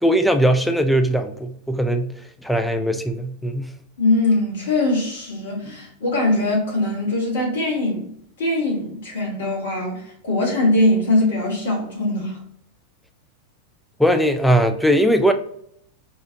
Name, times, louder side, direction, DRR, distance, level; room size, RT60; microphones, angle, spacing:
voice 1, 0.0-2.1 2.4-3.7 14.0-15.3, equal, ahead, 0.3 m, -19 dB
voice 2, 4.0-12.4, left 2 dB, 60° left, 1.4 m, -22 dB
4.5 x 2.4 x 2.6 m
figure-of-eight pair, 90°, 0 cm